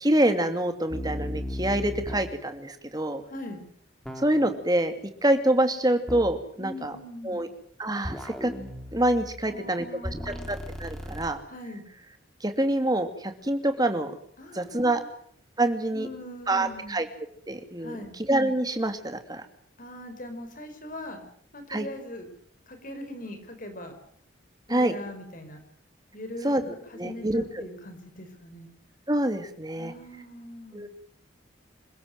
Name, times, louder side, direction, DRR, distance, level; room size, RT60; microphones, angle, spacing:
voice 1, 0.0-3.2 4.2-4.9 5.2-6.9 7.2-7.5 7.8-8.5 8.9-9.9 10.5-11.4 12.4-14.1 14.5-15.0 15.6-16.1 16.5-17.1 17.5-18.0 18.3-19.4 21.7-21.9 24.7-24.9 26.4-26.6 27.0-27.6 29.1-29.9 30.7-30.9, right 1 dB, 20° right, 7 dB, 2.6 m, -26 dB
sound 1, 0.9-2.4 4.1-4.6 6.1-6.4 8.0-9.6 10.0-11.3, equal, ahead, 3.9 m, -36 dB
voice 2, 3.3-3.6 6.6-7.5 9.4-10.5 11.5-11.8 14.4-15.1 15.9-17.0 17.8-18.2 19.8-21.2 21.5-22.3 22.7-23.9 24.7-25.6 26.1-28.7 29.8-30.8, left 1 dB, 45° left, 7 dB, 5.2 m, -41 dB
27.5 x 16.0 x 9.3 m, 0.63 s
head